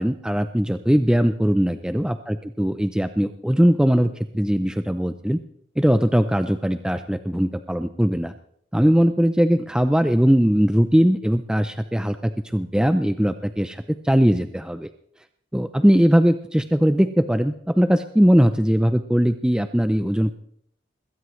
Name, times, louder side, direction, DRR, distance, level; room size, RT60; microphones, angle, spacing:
voice 1, 0.0-5.4 5.8-8.3 8.7-14.9 15.5-20.3, equal, 5° right, 9 dB, 0.5 m, -20 dB
21.0 x 17.0 x 3.2 m, 0.68 s
head